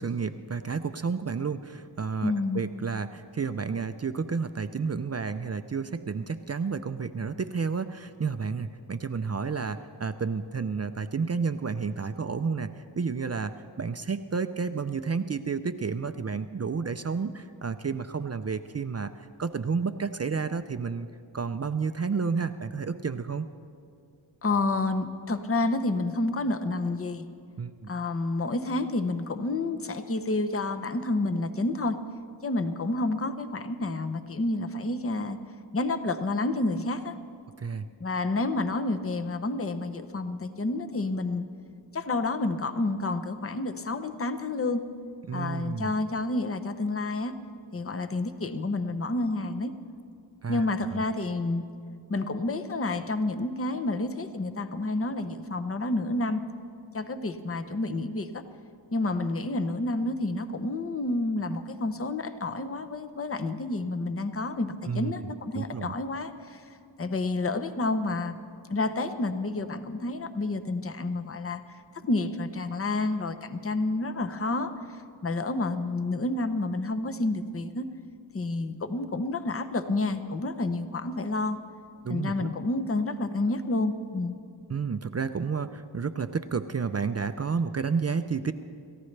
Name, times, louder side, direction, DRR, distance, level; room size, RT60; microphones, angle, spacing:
voice 1, 0.0-21.1 21.3-23.5 27.6-27.9 37.6-37.9 45.3-45.9 50.4-50.6 50.9-51.0 64.9-65.1 65.5-65.9 82.0-82.5 84.7-88.5, right 5 dB, 35° right, 9 dB, 0.5 m, -31 dB
voice 2, 2.2-2.6 24.4-27.3 27.9-32.0 32.4-35.4 35.7-37.2 38.0-41.4 41.9-44.8 45.3-47.3 47.7-49.7 50.5-51.6 52.1-56.4 56.9-58.4 58.9-66.7 67.0-68.3 68.7-77.9 78.3-81.6 82.1-84.4, left 2 dB, 30° left, 9 dB, 0.8 m, -29 dB
28.0 x 14.5 x 3.3 m, 2.4 s
wide cardioid pair, 80°, 45 cm